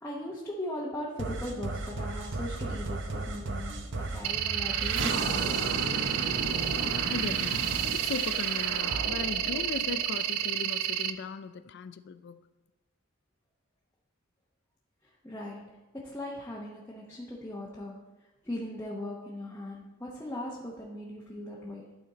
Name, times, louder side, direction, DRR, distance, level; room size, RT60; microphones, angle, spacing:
voice 1, 0.0-5.5 15.0-21.9, left 1 dB, 10° left, 0.9 m, -39 dB
sound 1, 1.2-10.5, right 2 dB, 60° right, 0.7 m, -34 dB
sound 2, 4.2-11.1, right 11 dB, 90° right, 0.5 m, -30 dB
voice 2, 7.1-12.4, left 5 dB, 55° left, 0.4 m, -38 dB
12.0 x 4.2 x 3.9 m
head